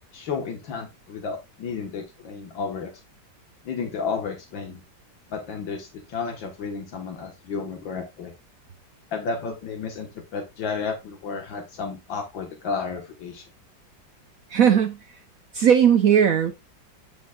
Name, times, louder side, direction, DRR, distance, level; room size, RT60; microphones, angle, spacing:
voice 1, 0.1-2.9 3.7-4.8 5.3-8.3 9.1-13.4, left 5 dB, 85° left, 2.2 m, -32 dB
voice 2, 14.5-15.0 15.5-16.7, right 8 dB, 65° right, 0.9 m, -18 dB
9.2 x 6.3 x 2.4 m
omnidirectional pair, 2.0 m